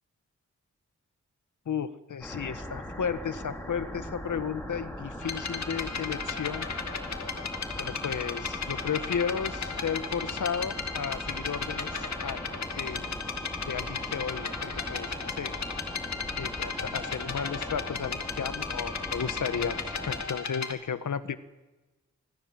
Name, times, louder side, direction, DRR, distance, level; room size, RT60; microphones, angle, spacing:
voice 1, 1.6-6.7 7.8-12.4 12.8-13.1 13.7-15.1 15.4-15.5 16.4-21.4, left 7 dB, 85° left, 12 dB, 1.4 m, -34 dB
sound 1, 2.2-20.2, equal, 5° left, 4.9 m, -40 dB
sound 2, 5.2-20.7, left 5 dB, 65° left, 2.4 m, -35 dB
26.0 x 25.5 x 7.6 m, 1.1 s
wide cardioid pair, 165°, 30 cm